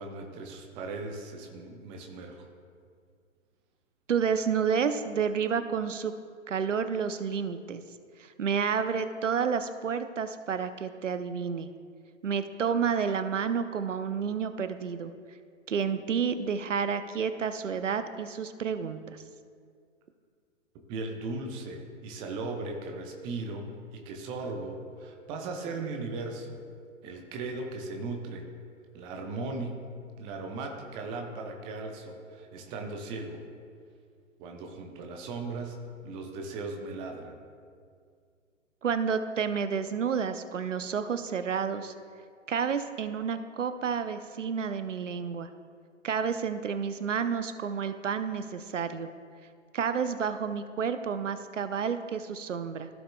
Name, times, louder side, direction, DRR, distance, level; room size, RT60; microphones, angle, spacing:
voice 1, 0.0-2.5 20.9-23.6 23.9-26.6 27.0-28.5 28.9-29.8 30.2-33.4 34.4-35.8 36.0-37.4, right 3 dB, 15° right, 3 dB, 0.5 m, -37 dB
voice 2, 4.1-6.1 6.5-7.8 8.2-11.7 12.2-15.1 15.7-19.2 38.8-41.9 42.5-45.5 46.0-49.1 49.7-52.9, right 6 dB, 70° right, 10 dB, 0.7 m, -30 dB
15.0 x 6.5 x 2.2 m, 2.2 s
figure-of-eight pair, 120°, 38 cm